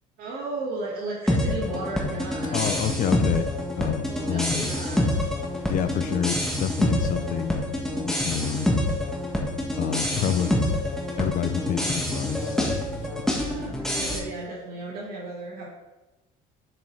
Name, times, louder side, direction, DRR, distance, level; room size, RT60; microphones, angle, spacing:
voice 1, 0.2-2.6 4.0-5.1 13.3-15.7, right 2 dB, 60° right, -4 dB, 1.8 m, -35 dB
sound 1, 1.3-14.2, left 1 dB, 5° left, 1.4 m, -26 dB
voice 2, 2.5-4.7 5.7-7.6 8.0-8.7 9.8-10.8 11.2-13.0, left 9 dB, 50° left, 9 dB, 0.5 m, -28 dB
7.6 x 6.0 x 3.3 m, 1.0 s
cardioid pair, 110°, 18 cm